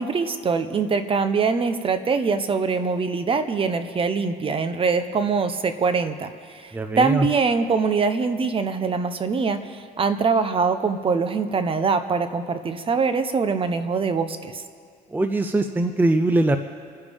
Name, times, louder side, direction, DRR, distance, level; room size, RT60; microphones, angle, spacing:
voice 1, 0.0-6.3 6.6-6.7 7.0-14.6, right 5 dB, 35° right, 10 dB, 0.9 m, -23 dB
voice 2, 6.7-7.3 15.1-16.6, right 2 dB, 10° right, 8 dB, 0.6 m, -21 dB
28.5 x 9.9 x 3.6 m, 2.2 s
cardioid pair, 110°, 17 cm